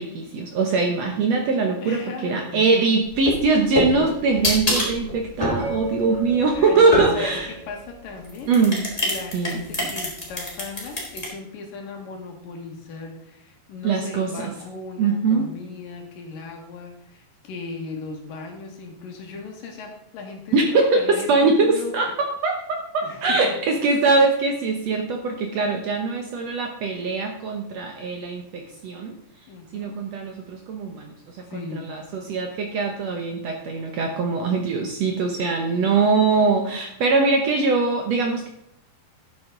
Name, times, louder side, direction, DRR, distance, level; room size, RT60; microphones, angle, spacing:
voice 1, 0.0-7.5 8.5-8.8 9.3-9.6 13.8-14.5 15.0-15.4 20.5-29.1 29.7-31.1 31.5-38.5, right 4 dB, 75° right, 3 dB, 1.5 m, -22 dB
voice 2, 1.8-3.1 6.5-8.6 9.0-22.1 23.0-23.6 29.5-30.0 31.5-31.9, left 4 dB, 65° left, 2 dB, 3.1 m, -37 dB
sound 1, 3.1-7.5 8.2-11.3, left 1 dB, 10° left, 2.4 m, -26 dB
Mallet percussion, 5.6-8.6, right 4 dB, 50° right, 3.8 m, -37 dB
12.0 x 7.8 x 3.8 m, 0.79 s
omnidirectional pair, 4.4 m